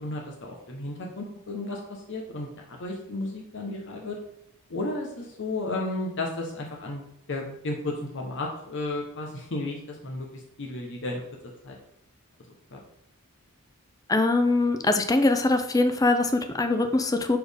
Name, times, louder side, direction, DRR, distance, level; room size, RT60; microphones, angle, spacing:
voice 1, 0.0-4.2 4.7-10.3 10.6-11.2 11.6-11.7 12.7-12.8, left 2 dB, 55° left, 0 dB, 1.0 m, -33 dB
voice 2, 14.1-17.4, left 2 dB, 15° left, 7 dB, 0.4 m, -22 dB
6.8 x 4.3 x 3.5 m, 0.75 s
head